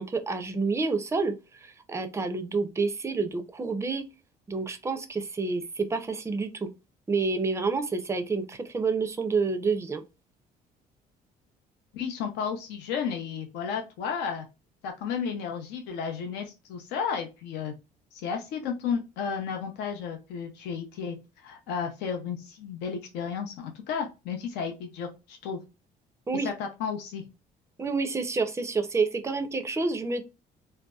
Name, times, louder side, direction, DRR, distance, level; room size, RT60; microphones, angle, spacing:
voice 1, 0.0-4.0 4.5-6.7 7.1-10.0 26.3-26.5 27.8-30.2, right 4 dB, 15° right, 0.4 m, -28 dB
voice 2, 11.9-14.5 14.8-17.7 18.1-21.2 21.4-25.6 26.4-27.2, left 6 dB, 85° left, 0.6 m, -33 dB
2.6 x 2.1 x 2.2 m
cardioid pair, 110°, 17 cm